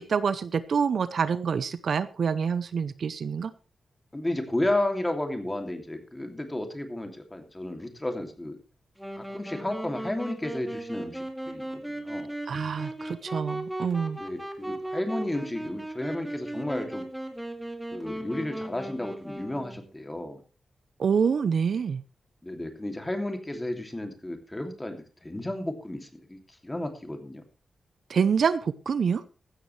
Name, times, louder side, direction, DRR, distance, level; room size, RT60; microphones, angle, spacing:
voice 1, 0.0-3.5 12.5-14.2 21.0-22.0 28.1-29.2, right 6 dB, 60° right, 14 dB, 0.7 m, -26 dB
voice 2, 4.1-8.6 9.2-12.3 14.2-17.1 17.9-20.4 22.4-27.4, left 1 dB, 15° left, 5 dB, 2.7 m, -33 dB
Wind instrument woodwind instrument, 9.0-19.9, right 1 dB, 5° right, 2.4 m, -37 dB
15.5 x 13.0 x 3.3 m, 0.35 s
wide cardioid pair, 125°, 0 cm